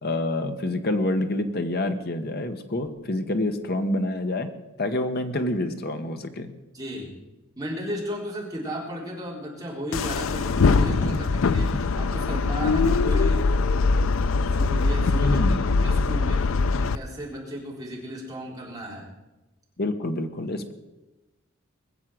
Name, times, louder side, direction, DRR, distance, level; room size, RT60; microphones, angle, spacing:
voice 1, 0.0-4.5 4.8-6.5 10.6-11.5 15.1-15.6 19.8-20.7, left 1 dB, 50° left, 7 dB, 1.3 m, -27 dB
voice 2, 6.7-7.2 7.6-13.5 14.5-15.4 15.8-16.5 16.8-19.0, equal, 20° right, -3 dB, 3.8 m, -34 dB
sound 1, 9.9-17.0, left 4 dB, 70° left, 0.5 m, -22 dB
21.0 x 7.5 x 7.7 m, 1.1 s
head